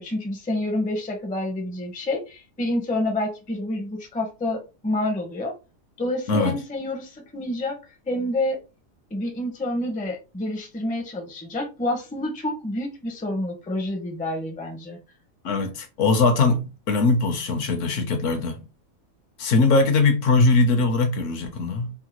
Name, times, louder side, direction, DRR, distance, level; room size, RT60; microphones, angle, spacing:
voice 1, 0.0-5.5 6.0-7.8 8.1-8.6 9.1-15.0, left 1 dB, 10° left, 0.4 m, -28 dB
voice 2, 15.4-18.6 19.4-21.9, left 3 dB, 65° left, 1.0 m, -21 dB
3.5 x 2.1 x 2.9 m
omnidirectional pair, 1.5 m